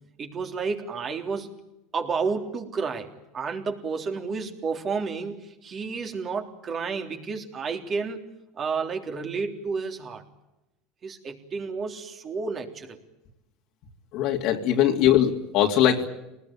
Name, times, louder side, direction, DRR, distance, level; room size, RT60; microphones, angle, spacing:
voice 1, 0.2-1.5 1.9-8.3 8.6-10.2 11.0-13.0, right 5 dB, 35° right, 4 dB, 3.5 m, -31 dB
voice 2, 14.1-16.1, left 11 dB, 60° left, 2 dB, 2.8 m, -21 dB
24.5 x 19.5 x 9.0 m, 0.92 s
supercardioid pair, 110°, 0 cm